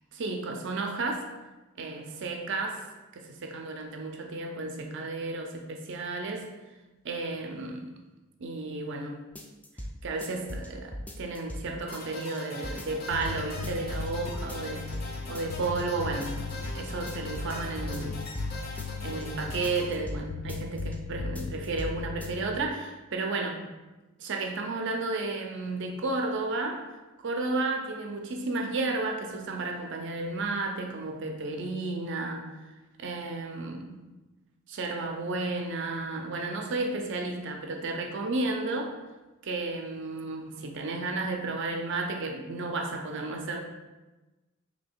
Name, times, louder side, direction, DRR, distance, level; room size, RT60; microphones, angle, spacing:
voice 1, 0.1-1.3 1.8-6.5 7.0-7.9 8.4-9.2 10.0-14.9 15.3-18.2 19.0-23.7 24.2-26.9 27.2-32.5 33.0-34.1 34.7-39.0 39.4-43.6, right 3 dB, 60° right, 3 dB, 0.5 m, -33 dB
sound 1, 9.4-9.9 10.2-11.6 11.9-12.4 12.6-13.3 13.6-14.1 14.3-15.1 15.3-15.8 16.1-16.8 17.1-18.5 18.8-19.2 19.5-20.2 20.5-21.0 21.2-21.9 22.2-22.3, equal, 5° left, 0.3 m, -38 dB
sound 2, 11.9-19.9, left 1 dB, 50° left, 0.6 m, -42 dB
Bass guitar, 13.1-22.7, left 5 dB, 90° left, 0.3 m, -38 dB
3.1 x 2.8 x 4.4 m, 1.1 s
head